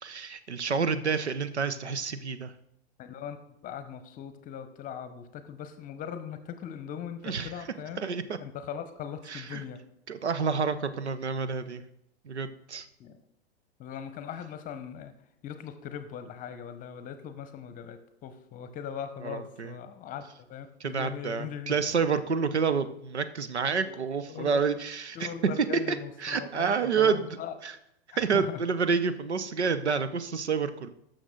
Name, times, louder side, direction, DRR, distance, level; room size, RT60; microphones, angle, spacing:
voice 1, 0.0-2.5 7.2-7.5 8.0-8.2 9.3-9.6 10.1-11.8 12.2-12.9 19.2-19.7 20.8-25.3 25.9-26.0 26.2-27.2 27.6-27.7 28.2-30.9, right 5 dB, 80° right, 12 dB, 0.8 m, -28 dB
voice 2, 3.0-3.4 3.6-8.0 8.4-9.8 13.0-13.2 13.8-15.1 15.4-20.2 20.5-21.8 23.8-24.0 24.3-24.6 25.1-27.5 28.1-28.6, left 8 dB, 25° left, 10 dB, 0.9 m, -40 dB
12.0 x 6.6 x 3.8 m, 0.78 s
figure-of-eight pair, 100°, 33 cm